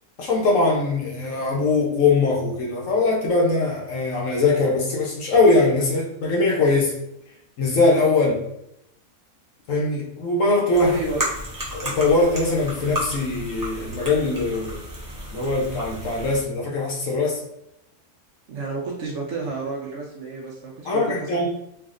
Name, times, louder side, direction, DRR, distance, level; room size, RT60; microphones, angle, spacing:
voice 1, 0.2-6.9 7.6-8.4 9.7-11.0 11.7-14.8 15.3-17.4 20.9-21.5, left 3 dB, 65° left, -2 dB, 1.0 m, -21 dB
sound 1, 10.7-16.4, equal, 20° right, 0.5 m, -33 dB
voice 2, 10.8-11.2 18.5-21.5, right 3 dB, 65° right, -1 dB, 0.8 m, -31 dB
3.4 x 2.4 x 2.4 m, 0.80 s
omnidirectional pair, 1.6 m